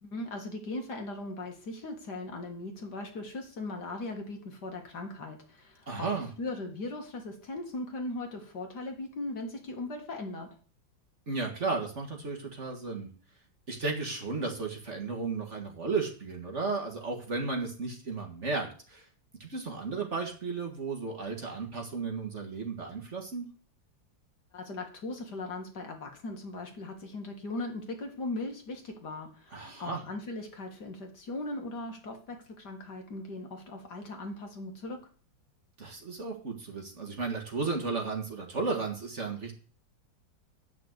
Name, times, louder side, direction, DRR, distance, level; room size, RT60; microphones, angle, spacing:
voice 1, 0.0-10.5 24.5-35.0, left 2 dB, 60° left, 3 dB, 2.4 m, -39 dB
voice 2, 5.9-6.3 11.3-13.1 13.7-19.1 19.4-23.5 29.5-30.0 35.8-39.5, right 4 dB, 40° right, 2 dB, 1.9 m, -34 dB
9.7 x 6.1 x 7.9 m, 0.41 s
omnidirectional pair, 2.1 m